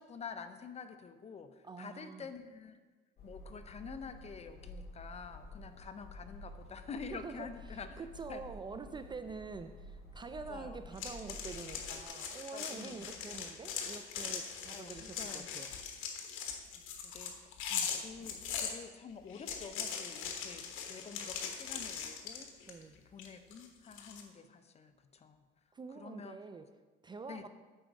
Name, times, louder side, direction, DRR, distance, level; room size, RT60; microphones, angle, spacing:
voice 1, 0.0-2.8 3.2-7.9 8.3-8.4 10.5-10.8 12.5-13.1 14.7-15.5 16.7-17.5 18.0-22.5 23.1-25.4 26.0-26.4 27.3-27.5, left 5 dB, 30° left, 9 dB, 0.7 m, -48 dB
voice 2, 1.6-2.3 7.1-15.7 17.7-18.0 22.7-23.0 25.7-26.7 27.0-27.5, right 4 dB, 20° right, 9 dB, 0.4 m, -46 dB
sound 1, 3.2-12.1, left 1 dB, 45° left, 1.8 m, -51 dB
sound 2, 11.0-18.7 19.3-22.8 23.2-24.2, left 7 dB, 75° left, 1.2 m, -41 dB
9.0 x 4.6 x 6.4 m, 1.3 s
cardioid pair, 115°, 21 cm